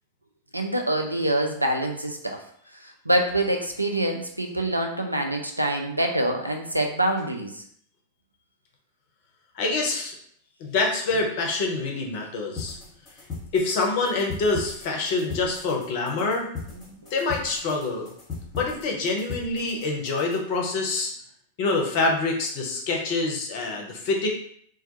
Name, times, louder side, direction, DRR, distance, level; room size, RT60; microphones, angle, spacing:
voice 1, 0.5-2.4 3.1-7.5, right 1 dB, 85° right, 3 dB, 0.3 m, -25 dB
voice 2, 9.5-10.1 10.6-12.8 13.5-18.1 18.5-21.1 21.6-24.3, left 3 dB, 45° left, 0 dB, 0.6 m, -26 dB
sound 1, 12.6-20.5, left 4 dB, 25° left, 0.9 m, -39 dB
2.2 x 2.2 x 2.7 m, 0.65 s
figure-of-eight pair, 90°, 0 cm